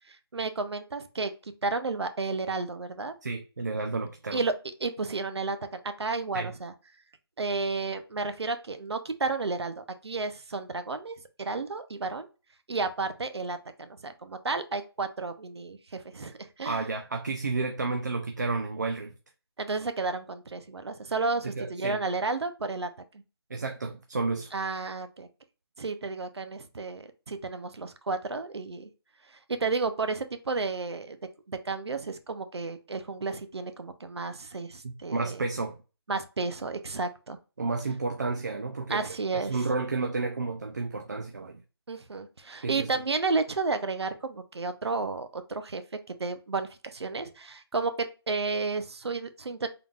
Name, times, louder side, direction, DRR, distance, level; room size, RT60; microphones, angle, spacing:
voice 1, 0.1-3.1 4.3-4.5 4.8-6.7 7.4-12.3 12.7-16.9 19.6-22.9 24.5-25.3 25.8-28.9 29.5-31.2 31.5-35.4 36.1-37.4 38.9-39.6 41.9-45.8 46.2-49.7, right 3 dB, 80° right, 0.7 m, -32 dB
voice 2, 3.2-4.4 6.3-6.5 16.6-19.1 21.4-22.0 23.5-24.5 34.8-35.7 37.6-39.1 39.3-41.6 42.6-42.9, right 3 dB, 45° right, 0.4 m, -31 dB
3.8 x 3.5 x 2.4 m
hypercardioid pair, 175°, 14 cm